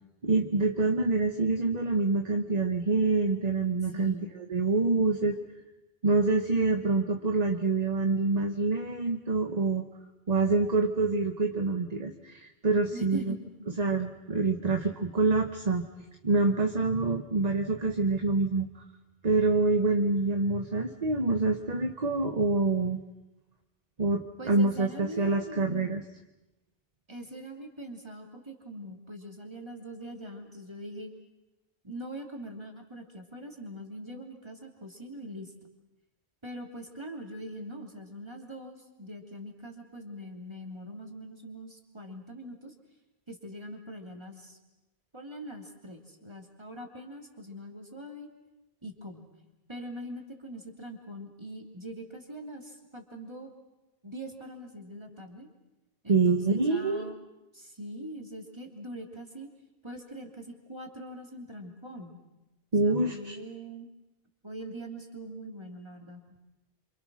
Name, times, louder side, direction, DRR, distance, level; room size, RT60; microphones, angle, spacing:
voice 1, 0.2-4.1 4.5-5.4 6.0-9.8 10.3-13.4 13.8-15.9 16.2-18.7 19.2-23.0 24.0-26.0 56.1-57.1 62.7-63.4, right 3 dB, 40° right, 5 dB, 1.3 m, -26 dB
voice 2, 3.8-4.3 12.9-13.7 24.4-25.9 27.1-31.1 31.8-35.5 36.4-42.7 43.3-44.6 45.1-48.3 48.8-49.3 49.7-53.5 54.0-55.5 56.0-57.1 57.5-59.5 59.8-62.2 62.8-63.9 64.4-66.4, right 1 dB, 25° right, 2 dB, 3.1 m, -42 dB
28.5 x 26.5 x 6.3 m, 0.99 s
omnidirectional pair, 1.0 m